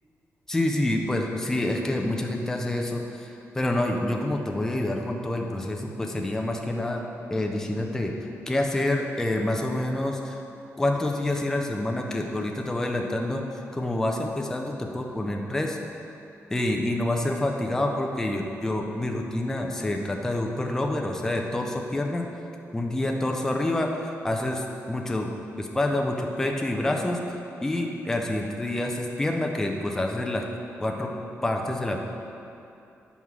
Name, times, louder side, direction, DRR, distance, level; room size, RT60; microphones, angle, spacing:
voice 1, 0.5-7.0 7.3-8.1 8.5-10.4 10.8-13.4 13.7-15.8 16.5-22.3 22.7-25.3 25.6-27.2 27.6-30.4 30.8-31.1 31.4-32.0, left 1 dB, 10° left, 1 dB, 0.5 m, -27 dB
5.5 x 4.7 x 5.9 m, 2.8 s
wide cardioid pair, 160°, 5 cm